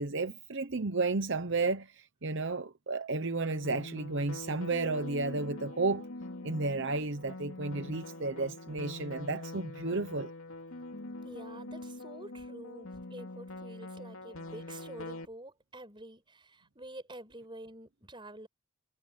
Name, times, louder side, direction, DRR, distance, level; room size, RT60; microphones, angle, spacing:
voice 1, 0.0-6.1 6.4-10.3, right 3 dB, 55° right, 0.9 m, -32 dB
sound 1, 3.2-15.2, left 2 dB, 70° left, 2.9 m, -44 dB
voice 2, 11.2-18.5, right 1 dB, 20° right, 5.5 m, -48 dB
head